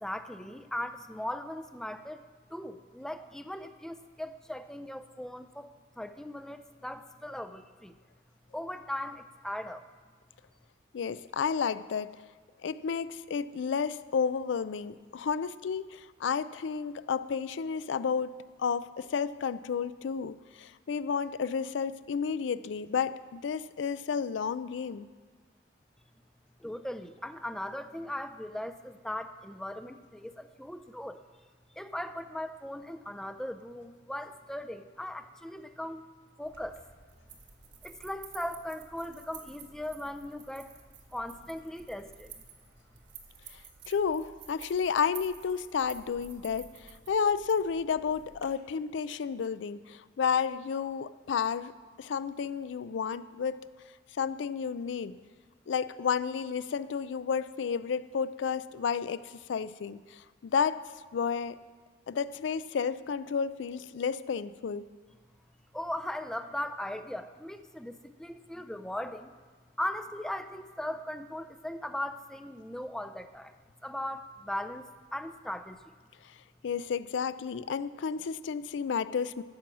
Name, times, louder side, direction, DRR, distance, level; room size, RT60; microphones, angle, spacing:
voice 1, 0.0-2.2 2.5-7.9 8.5-9.8 26.6-31.2 31.8-36.0 36.4-36.8 37.8-40.7 41.1-42.3 65.7-69.3 69.8-73.5 73.8-75.8, left 1 dB, 5° left, 10 dB, 0.4 m, -38 dB
voice 2, 10.9-12.1 12.6-18.3 18.6-25.1 43.9-51.7 52.0-53.6 54.2-55.1 55.7-59.2 59.5-60.8 61.1-61.6 62.1-64.9 76.6-79.4, left 6 dB, 80° left, 15 dB, 0.4 m, -31 dB
sound 1, 36.4-48.5, right 7 dB, 75° right, 1.5 m, -52 dB
14.0 x 6.2 x 6.0 m, 1.5 s
head